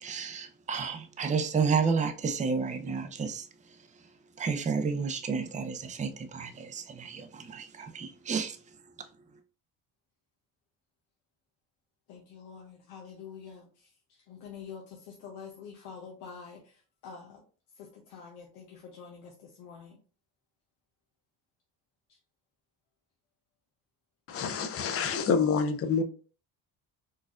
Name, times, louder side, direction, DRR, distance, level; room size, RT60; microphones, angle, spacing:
voice 1, 0.0-3.8 4.4-8.6, right 5 dB, 15° right, 0.4 m, -31 dB
voice 2, 12.1-13.7 14.3-16.7 17.0-17.4 17.8-20.0, left 6 dB, 85° left, 0.7 m, -46 dB
voice 3, 24.3-26.0, left 5 dB, 35° left, 0.5 m, -27 dB
4.3 x 2.4 x 2.4 m
supercardioid pair, 75°, 44 cm